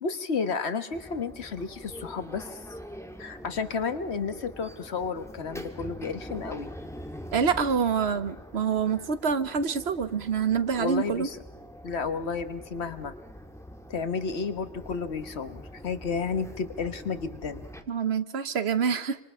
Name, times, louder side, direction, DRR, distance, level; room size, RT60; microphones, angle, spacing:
voice 1, 0.0-2.6 3.2-6.7 10.7-11.4 11.8-13.1 13.9-17.7, left 5 dB, 70° left, 10 dB, 1.5 m, -32 dB
sound 1, 0.9-17.8, equal, 5° left, 1.7 m, -44 dB
voice 2, 7.3-11.3 17.9-19.2, right 6 dB, 70° right, 12 dB, 1.2 m, -26 dB
26.5 x 26.0 x 5.5 m, 1.0 s
omnidirectional pair, 1.1 m